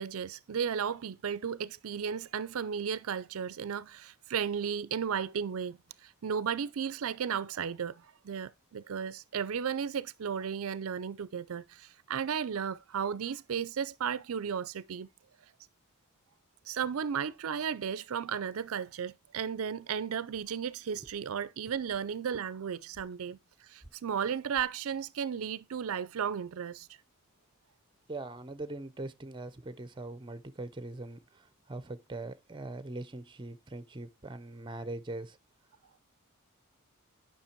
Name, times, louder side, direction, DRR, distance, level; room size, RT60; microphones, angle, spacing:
voice 1, 0.0-15.1 16.7-26.9, right 7 dB, 70° right, 0.4 m, -34 dB
sound 1, 20.3-20.4 21.0-21.2 21.9-22.1 22.9-23.1 23.8-23.9 24.5-24.7, equal, 35° left, 3.5 m, -57 dB
voice 2, 28.1-35.4, right 2 dB, 20° right, 0.6 m, -41 dB
10.0 x 5.8 x 4.5 m
head